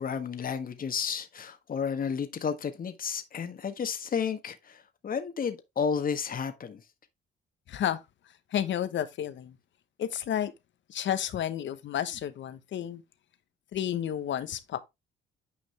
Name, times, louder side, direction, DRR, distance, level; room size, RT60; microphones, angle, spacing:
voice 1, 0.0-6.8, left 6 dB, 45° left, 1.5 m, -32 dB
voice 2, 7.7-8.0 8.5-9.6 10.0-10.5 10.9-13.0 13.7-14.8, left 10 dB, 70° left, 1.2 m, -31 dB
9.7 x 5.2 x 3.4 m
cardioid pair, 90°, 20 cm